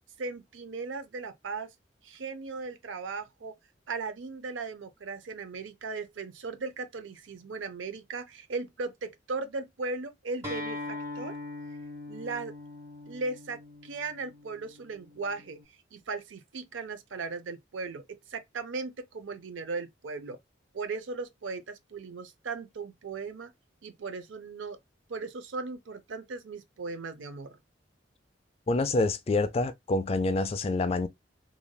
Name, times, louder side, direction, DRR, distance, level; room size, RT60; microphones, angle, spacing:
voice 1, 0.2-1.7 2.0-3.6 3.9-11.4 12.1-12.5 13.1-15.6 15.9-20.4 20.7-23.5 23.8-24.8 25.1-27.6, right 4 dB, 85° right, 0.6 m, -37 dB
Acoustic guitar, 10.4-15.6, left 2 dB, 15° right, 1.5 m, -41 dB
voice 2, 28.7-31.1, left 2 dB, 30° left, 0.3 m, -27 dB
3.2 x 2.5 x 2.2 m
head